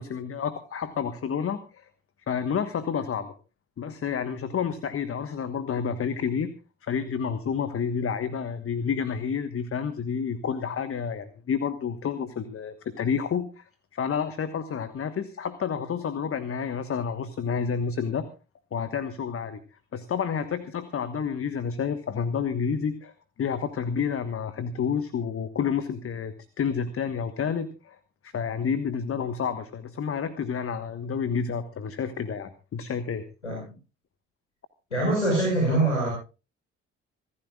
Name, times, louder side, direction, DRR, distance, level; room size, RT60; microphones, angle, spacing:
voice 1, 0.0-1.9 2.3-3.3 3.8-6.5 6.8-13.6 13.9-18.3 18.7-19.6 19.9-23.1 23.4-33.2, left 6 dB, 40° left, 12 dB, 1.4 m, -29 dB
voice 2, 34.9-36.1, right 2 dB, 90° left, -1 dB, 5.1 m, -23 dB
27.0 x 14.0 x 2.4 m, 0.33 s
figure-of-eight pair, 45°, 34 cm